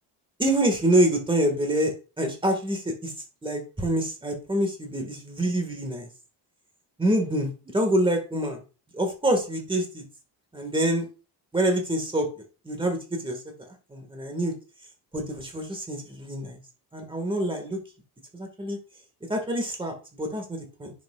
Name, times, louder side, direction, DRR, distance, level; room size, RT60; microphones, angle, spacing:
voice 1, 0.4-3.1 3.4-6.1 7.0-8.6 8.9-10.0 10.5-11.0 11.5-12.3 12.7-13.4 13.9-14.5 15.1-16.6 16.9-17.8 18.3-18.8 19.3-20.9, right 1 dB, 10° right, 4 dB, 1.8 m, -26 dB
10.5 x 6.2 x 2.5 m, 0.33 s
cardioid pair, 155°, 45 cm